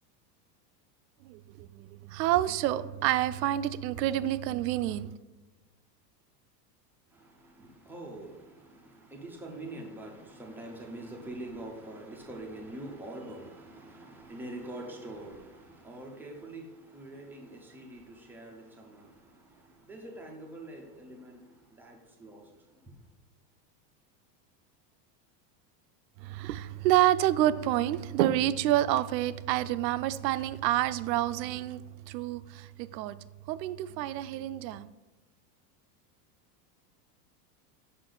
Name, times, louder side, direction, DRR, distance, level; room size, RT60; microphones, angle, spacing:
voice 1, 1.2-5.1 26.2-33.2 33.5-34.9, right 13 dB, 85° right, 0.6 m, -28 dB
voice 2, 7.1-22.9, right 1 dB, 5° right, 0.3 m, -45 dB
6.7 x 5.2 x 3.8 m
supercardioid pair, 145°, 50 cm